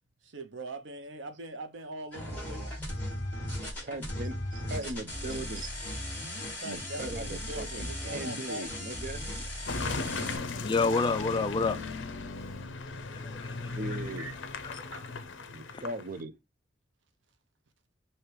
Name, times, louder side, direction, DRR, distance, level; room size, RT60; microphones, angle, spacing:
voice 1, 0.2-2.8 3.7-3.9 4.8-4.9 6.6-8.7 13.4-14.3 14.9-15.1, right 2 dB, 80° right, 0.8 m, -43 dB
sound 1, 2.1-10.4, left 1 dB, 10° left, 1.7 m, -37 dB
voice 2, 3.8-5.7 6.6-9.2 13.6-14.3 15.4-16.3, right 2 dB, 45° right, 0.6 m, -39 dB
Car passing by / Engine, 9.7-16.2, left 3 dB, 80° left, 0.6 m, -37 dB
voice 3, 10.6-11.8 13.1-13.5 13.9-14.0 14.6-14.9 15.7-15.8, left 4 dB, 25° left, 0.3 m, -29 dB
3.3 x 2.8 x 4.5 m
head